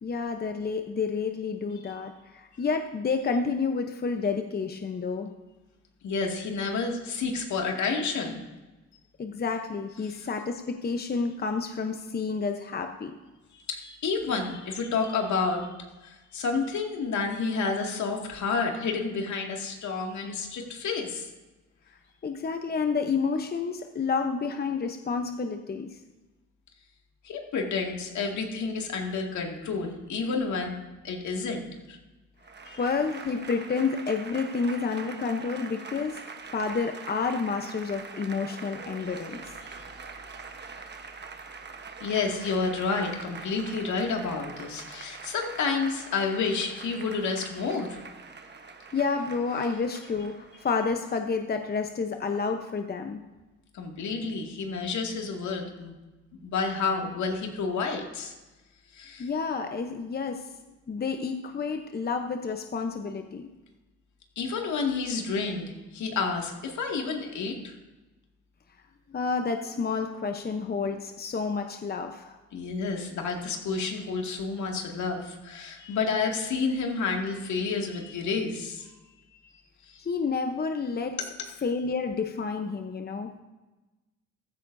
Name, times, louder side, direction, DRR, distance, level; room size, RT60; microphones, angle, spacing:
voice 1, 0.0-5.3 9.2-13.1 22.2-26.0 32.8-36.2 36.5-39.4 48.9-53.2 59.2-60.4 60.9-63.5 69.1-72.4 80.0-81.2 81.6-83.3, left 5 dB, 30° left, 5 dB, 0.9 m, -30 dB
voice 2, 6.0-8.4 10.0-10.3 13.5-15.7 16.0-21.3 27.2-32.0 32.7-32.8 39.7-39.8 42.0-48.0 53.7-55.9 56.4-58.3 58.9-59.3 64.4-67.7 72.5-78.9 79.8-80.1, left 4 dB, 70° left, 1 dB, 2.3 m, -30 dB
Applause / Crowd, 32.4-50.9, right 5 dB, 35° right, 1.1 m, -44 dB
15.0 x 13.5 x 2.7 m, 1.1 s
cardioid pair, 90°, 30 cm